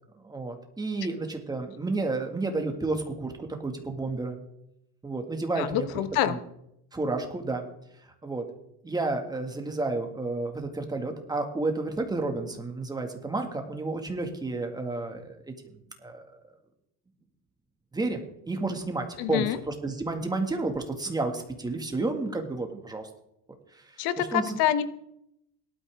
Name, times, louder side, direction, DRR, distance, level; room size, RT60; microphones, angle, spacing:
voice 1, 0.2-4.4 5.0-5.9 6.2-6.4 6.9-7.7 8.2-8.5 8.8-15.5 16.0-16.3 17.9-18.2 18.5-23.1 24.2-24.6, right 3 dB, 10° right, 4 dB, 2.0 m, -31 dB
voice 2, 5.6-6.4 19.2-19.6 24.0-24.8, left 11 dB, 75° left, 12 dB, 1.2 m, -26 dB
18.0 x 12.5 x 3.6 m, 0.77 s
cardioid pair, 150°, 36 cm